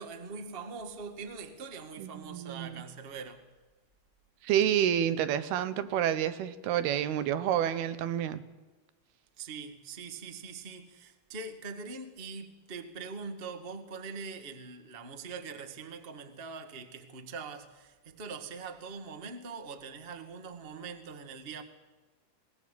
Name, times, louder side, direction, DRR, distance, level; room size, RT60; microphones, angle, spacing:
voice 1, 0.0-3.5 9.4-21.6, right 4 dB, 55° right, 0.6 m, -43 dB
voice 2, 2.0-2.8 4.4-8.4, right 10 dB, 90° right, 3.1 m, -29 dB
20.5 x 20.0 x 8.4 m
omnidirectional pair, 4.4 m